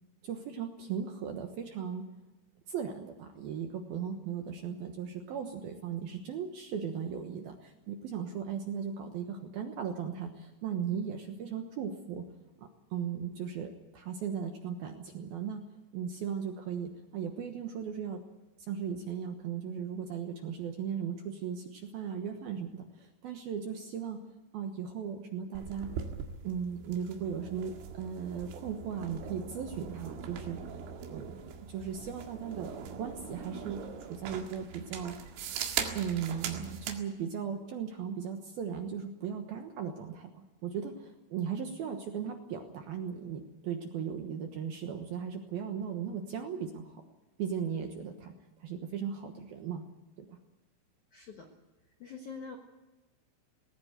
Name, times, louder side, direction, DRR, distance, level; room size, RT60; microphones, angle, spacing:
voice 1, 0.2-2.1 2.7-12.2 12.6-15.6 15.9-18.2 18.7-24.2 24.5-25.9 26.4-30.8 31.1-35.2 35.9-47.0 47.4-48.3 48.6-49.8 50.2-50.3, right 7 dB, 70° right, 5 dB, 2.4 m, -37 dB
sound 1, 25.6-37.0, right 7 dB, 85° right, 4.6 m, -41 dB
voice 2, 51.1-51.5 52.0-52.6, left 5 dB, 65° left, 2 dB, 1.9 m, -44 dB
19.5 x 19.0 x 8.0 m, 1.1 s
omnidirectional pair, 5.8 m